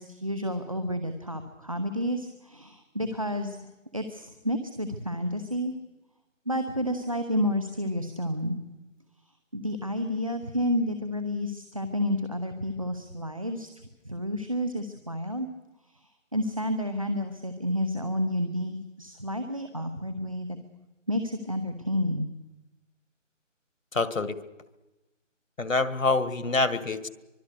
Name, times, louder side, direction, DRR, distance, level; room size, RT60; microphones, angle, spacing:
voice 1, 0.0-3.6 3.9-5.7 6.5-8.6 9.5-13.7 14.0-15.5 15.9-20.5 21.1-22.3, equal, 25° right, 8 dB, 1.0 m, -30 dB
voice 2, 23.9-24.4 25.6-27.1, left 3 dB, 85° left, 13 dB, 1.9 m, -26 dB
24.5 x 21.5 x 6.6 m, 1.1 s
figure-of-eight pair, 175°, 38 cm